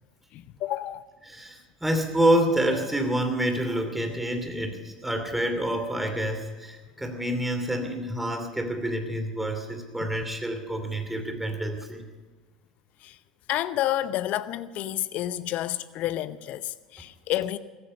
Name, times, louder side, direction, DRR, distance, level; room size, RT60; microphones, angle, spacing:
voice 1, 0.3-1.0 13.0-13.2 13.5-17.6, left 13 dB, 50° left, 0.8 m, -30 dB
voice 2, 1.3-12.1, right 1 dB, 5° right, 2.9 m, -27 dB
15.5 x 15.0 x 5.4 m
figure-of-eight pair, 70°, 3 cm